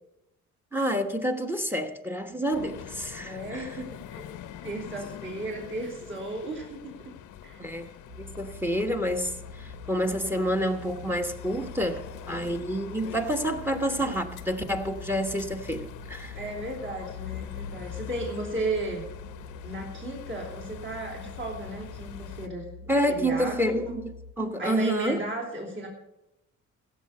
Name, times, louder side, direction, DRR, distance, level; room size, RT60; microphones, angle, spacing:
voice 1, 0.7-3.7 7.6-7.9 8.3-16.4 22.9-25.2, equal, 5° right, 1.2 m, -28 dB
sound 1, 2.5-22.5, left 10 dB, 85° left, 0.9 m, -44 dB
voice 2, 3.2-4.4 4.6-7.1 7.4-7.6 16.3-19.0 19.6-23.9 24.6-25.9, right 2 dB, 40° right, 3.5 m, -35 dB
sound 2, 8.1-24.3, left 2 dB, 65° right, 1.2 m, -45 dB
16.0 x 6.8 x 6.7 m
cardioid pair, 90°, 30 cm